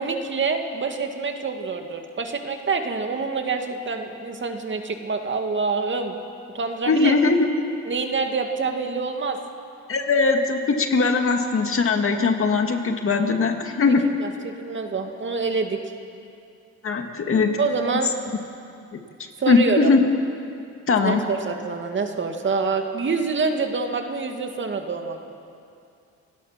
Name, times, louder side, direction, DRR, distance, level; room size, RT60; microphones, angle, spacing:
voice 1, 0.0-6.1 6.5-7.1 7.9-9.4 14.2-15.8 17.6-18.1 19.4-19.9 21.0-25.3, right 4 dB, 40° right, 4 dB, 2.3 m, -26 dB
voice 2, 6.9-7.5 9.9-14.0 16.8-17.6 18.9-19.0 19.5-20.1 20.9-21.2, left 4 dB, 45° left, 4 dB, 2.1 m, -20 dB
29.0 x 17.5 x 5.9 m, 2.5 s
cardioid pair, 90°, 30 cm